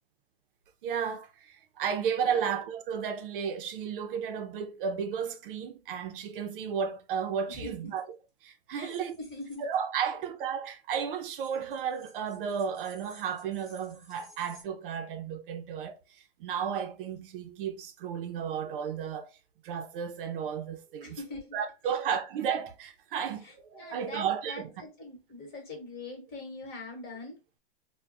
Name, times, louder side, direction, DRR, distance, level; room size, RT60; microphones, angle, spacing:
voice 1, 0.8-8.1 8.4-9.2 9.6-16.0 16.4-19.3 19.6-21.2 21.5-24.7, right 7 dB, 60° right, 0.5 m, -33 dB
sound 1, 7.9-8.0 8.8-9.8 11.2-14.6, right 1 dB, ahead, 0.8 m, -57 dB
voice 2, 8.7-9.6 10.0-10.2 21.0-21.6 23.4-27.4, left 2 dB, 30° left, 1.2 m, -43 dB
2.2 x 2.1 x 3.7 m
hypercardioid pair, 145°, 31 cm